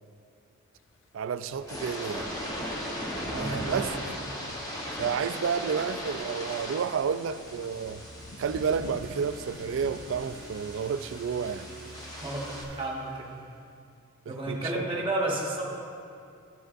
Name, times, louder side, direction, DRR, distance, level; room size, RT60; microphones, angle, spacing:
Thunder, 0.8-2.0 2.6-2.7 2.9-10.7, left 2 dB, 60° left, 0.5 m, -48 dB
voice 1, 1.1-2.3 3.3-3.9 5.0-8.0 8.4-11.7 14.3-14.9, right 6 dB, 65° right, 0.3 m, -31 dB
sound 1, 1.5-12.6, equal, 15° left, 0.8 m, -38 dB
voice 2, 3.1-3.9 12.2-13.3 14.3-15.6, right 1 dB, 25° right, 1.1 m, -32 dB
sound 2, 7.8-14.0, right 2 dB, 80° right, 0.8 m, -49 dB
13.5 x 7.7 x 2.5 m
head